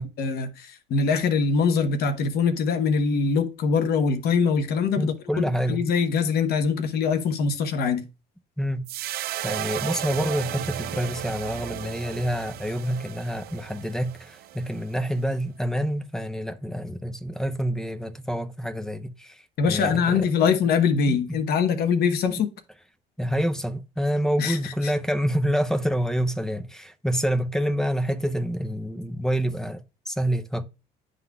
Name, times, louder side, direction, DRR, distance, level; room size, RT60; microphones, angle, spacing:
voice 1, 0.2-5.1 5.7-8.0 19.6-22.5 24.4-24.9, left 5 dB, 70° left, 1.0 m, -23 dB
voice 2, 5.0-5.9 8.6-8.9 9.4-20.5 21.1-21.4 23.2-30.6, equal, 5° left, 0.5 m, -27 dB
sound 1, 8.9-15.3, right 13 dB, 65° right, 0.4 m, -34 dB
11.0 x 3.8 x 2.3 m
cardioid pair, 110°, 17 cm